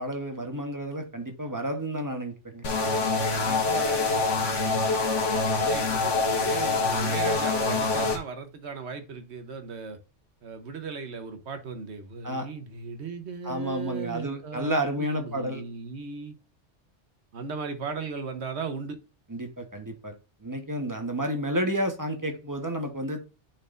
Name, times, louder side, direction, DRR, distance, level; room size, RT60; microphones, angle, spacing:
voice 1, 0.0-2.6 12.2-12.5 13.4-15.6 19.3-20.1 20.4-23.2, equal, 15° right, 1.1 m, -31 dB
sound 1, 2.6-8.2, left 3 dB, 75° left, 1.6 m, -25 dB
voice 2, 3.3-4.3 5.5-10.0 10.4-16.3 17.3-19.0, right 5 dB, 65° right, 1.2 m, -37 dB
10.0 x 4.2 x 2.5 m
omnidirectional pair, 1.3 m